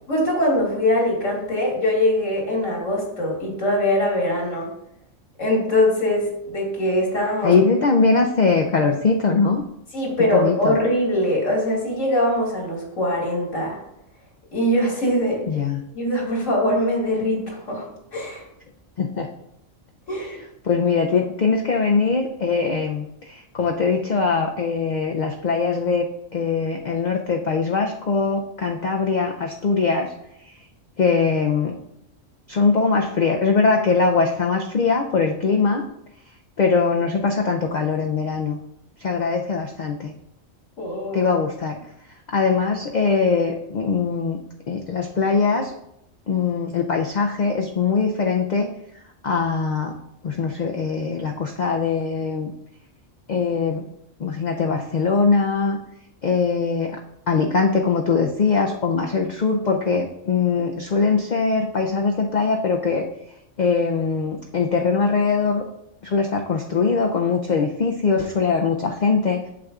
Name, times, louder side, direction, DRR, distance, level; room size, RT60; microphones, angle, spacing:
voice 1, 0.1-4.7 5.4-7.5 9.9-13.8 14.5-15.4 15.9-18.4 20.1-20.4 40.8-41.3, left 1 dB, 80° left, -2 dB, 2.4 m, -22 dB
voice 2, 7.4-9.6 10.3-10.7 15.5-15.8 19.0-19.3 20.6-26.1 26.3-30.1 31.0-31.7 32.5-35.8 36.6-38.6 39.0-40.1 41.1-41.8 42.3-44.4 44.7-45.7 46.3-48.7 49.2-49.9 50.2-52.5 53.3-53.8 54.2-55.8 56.2-57.0 57.3-63.1 63.6-65.6 66.0-69.4, left 4 dB, 55° left, 2 dB, 0.5 m, -21 dB
8.4 x 6.6 x 2.4 m, 0.81 s
omnidirectional pair, 1.3 m